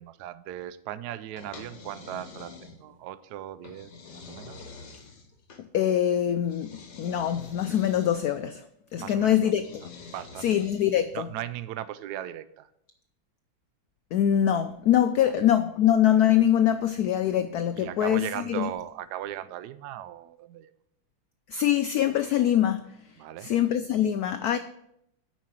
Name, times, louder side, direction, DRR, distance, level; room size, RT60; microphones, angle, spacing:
voice 1, 0.0-4.7 9.0-9.5 10.1-10.6 11.1-12.7 15.3-15.4 17.8-20.7 23.2-23.5, right 12 dB, 75° right, 14 dB, 0.9 m, -38 dB
sound 1, 1.4-3.0 3.6-5.7 6.5-8.4 9.6-11.2, left 4 dB, 60° left, 1.7 m, -47 dB
voice 2, 5.6-8.6 8.9-9.8 10.4-11.3 14.1-18.7 21.5-23.0 23.4-24.6, left 10 dB, 90° left, 9 dB, 0.8 m, -24 dB
9.0 x 5.8 x 6.2 m, 0.75 s
omnidirectional pair, 2.2 m